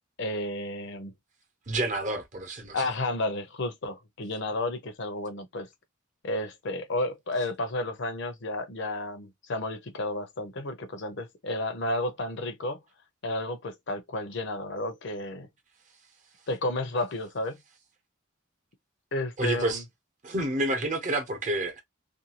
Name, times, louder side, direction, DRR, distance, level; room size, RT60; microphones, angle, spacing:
voice 1, 0.2-1.1 2.7-5.7 6.2-12.8 13.2-15.5 16.5-17.6 19.1-19.8, left 2 dB, 60° left, 0.6 m, -32 dB
voice 2, 1.7-2.8 19.4-19.8 20.2-21.8, right 2 dB, 40° right, 0.8 m, -29 dB
2.5 x 2.3 x 2.8 m
head